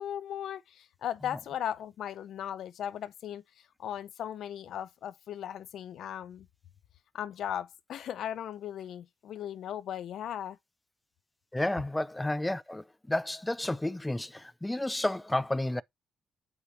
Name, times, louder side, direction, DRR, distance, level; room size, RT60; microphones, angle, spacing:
voice 1, 0.0-3.4 3.8-6.5 7.1-10.6, left 10 dB, 70° left, 0.6 m, -37 dB
voice 2, 11.5-15.8, left 1 dB, 10° left, 0.4 m, -31 dB
8.2 x 5.0 x 2.9 m
cardioid pair, 90°, 0 cm